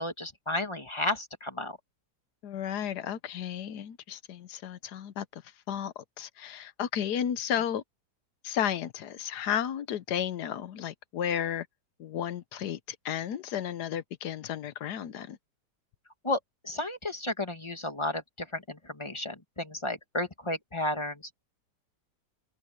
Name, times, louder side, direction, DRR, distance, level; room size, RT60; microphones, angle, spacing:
voice 1, 0.0-1.8 16.2-21.4, left 1 dB, 15° left, 1.9 m, -33 dB
voice 2, 2.4-5.4 5.7-7.8 8.4-11.7 12.0-15.4, left 9 dB, 70° left, 1.3 m, -33 dB
open air
omnidirectional pair, 1.9 m